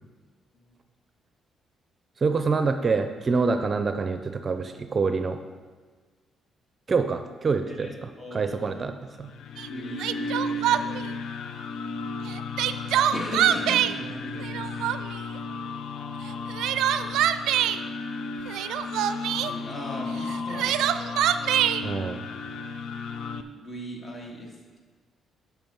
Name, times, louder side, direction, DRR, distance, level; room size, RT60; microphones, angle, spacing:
voice 1, 2.2-5.4 6.9-7.9 8.3-8.9 9.2-9.3 21.8-22.2, right 4 dB, 35° right, 8 dB, 0.6 m, -26 dB
voice 2, 7.7-8.9 9.6-11.2 13.1-14.7 19.3-20.8 23.5-24.8, equal, 35° left, -1 dB, 2.4 m, -38 dB
sound 1, 9.2-23.4, left 3 dB, 70° left, 0.6 m, -34 dB
Crying sobbing, 9.6-9.7 10.0-11.1 12.3-13.9 14.4-15.2 16.3-17.8 18.5-19.5 20.3-21.8, right 11 dB, 85° right, 0.4 m, -24 dB
10.5 x 6.2 x 5.6 m, 1.4 s
cardioid pair, 90°, 0 cm